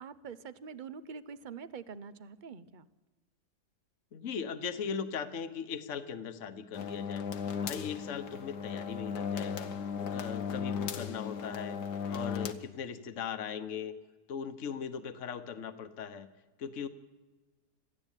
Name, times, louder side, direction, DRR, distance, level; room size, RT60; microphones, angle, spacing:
voice 1, 0.0-2.9, right 6 dB, 40° right, 15 dB, 0.7 m, -45 dB
voice 2, 4.1-7.2 7.6-9.7 10.1-11.8 12.1-13.9 14.3-16.3 16.6-16.9, left 7 dB, 50° left, 10 dB, 1.4 m, -39 dB
sound 1, 6.7-12.5, left 6 dB, 85° left, 1.7 m, -36 dB
26.5 x 15.0 x 9.0 m, 1.3 s
omnidirectional pair, 1.7 m